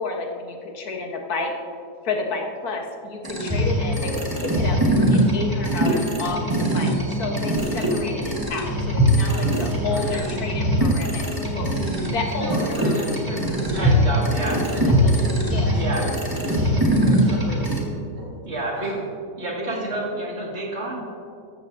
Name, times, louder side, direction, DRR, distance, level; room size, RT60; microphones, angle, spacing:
voice 1, 0.0-1.5 2.0-11.2 11.5-11.7 12.1-14.0 15.0-15.9, left 3 dB, 65° left, 2 dB, 1.6 m, -31 dB
sound 1, 3.2-17.8, equal, 15° right, 1.6 m, -22 dB
voice 2, 9.2-10.3 11.0-11.2 12.1-14.1 14.6-18.4 18.8-19.0 19.7-20.0, right 1 dB, 70° right, -4 dB, 3.7 m, -35 dB
voice 3, 13.7-14.7 15.7-16.1 18.4-19.0 19.4-21.0, right 1 dB, 40° right, -2 dB, 2.3 m, -29 dB
14.5 x 13.0 x 2.6 m, 2.4 s
omnidirectional pair, 1.8 m